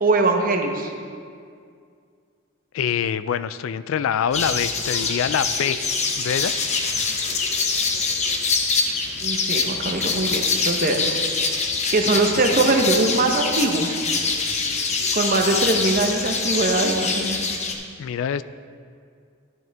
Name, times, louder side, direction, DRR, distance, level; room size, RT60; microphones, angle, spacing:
voice 1, 0.0-0.9 9.2-11.2 11.9-14.0 15.1-17.4, right 2 dB, 45° right, 3 dB, 0.9 m, -21 dB
voice 2, 2.7-5.8 6.2-6.7 18.0-18.4, left 8 dB, 75° left, 15 dB, 0.3 m, -25 dB
sound 1, 4.3-17.7, left 4 dB, 35° left, 0.8 m, -24 dB
10.5 x 9.2 x 3.4 m, 2.2 s
head